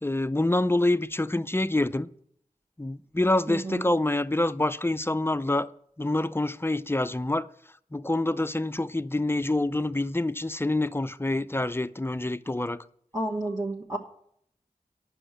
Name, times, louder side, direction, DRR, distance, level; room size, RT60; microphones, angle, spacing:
voice 1, 0.0-2.1 2.8-5.7 6.0-7.5 7.9-12.8, left 2 dB, 15° left, 0.4 m, -26 dB
voice 2, 3.5-3.9 13.1-14.0, right 1 dB, 20° right, 1.3 m, -31 dB
9.8 x 6.2 x 7.9 m
wide cardioid pair, 45°, 15 cm